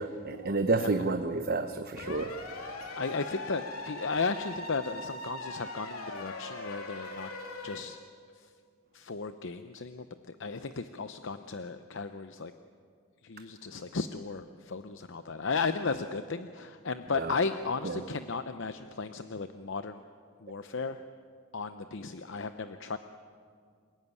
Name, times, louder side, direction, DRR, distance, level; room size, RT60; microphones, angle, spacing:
voice 1, 0.0-2.3 17.1-17.3 17.8-18.0, right 3 dB, 45° right, 8 dB, 0.9 m, -30 dB
sound 1, 2.0-7.8, left 2 dB, 85° left, 3.2 m, -40 dB
voice 2, 2.9-7.3 7.6-8.0 8.4-8.5 8.9-12.5 13.2-20.0 20.4-21.0 21.5-23.0, left 4 dB, 60° left, 10 dB, 0.7 m, -35 dB
28.0 x 16.5 x 9.7 m, 2.2 s
head